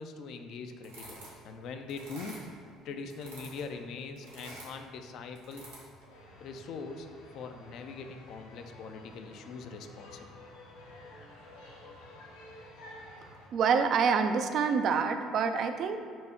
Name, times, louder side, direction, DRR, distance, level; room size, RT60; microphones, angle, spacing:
voice 1, 0.0-2.4 2.8-5.6 6.4-7.1 7.3-10.4, left 4 dB, 55° left, 6 dB, 0.3 m, -42 dB
sound 1, 0.8-1.5 1.9-2.7 3.1-3.8 4.2-4.8 5.4-6.0, right 1 dB, 80° right, 1.2 m, -48 dB
sound 2, 6.1-13.5, left 1 dB, 75° left, 0.7 m, -51 dB
voice 2, 13.5-16.0, right 6 dB, 50° right, 7 dB, 0.3 m, -26 dB
4.4 x 2.7 x 4.4 m, 2.3 s
figure-of-eight pair, 55°, 0 cm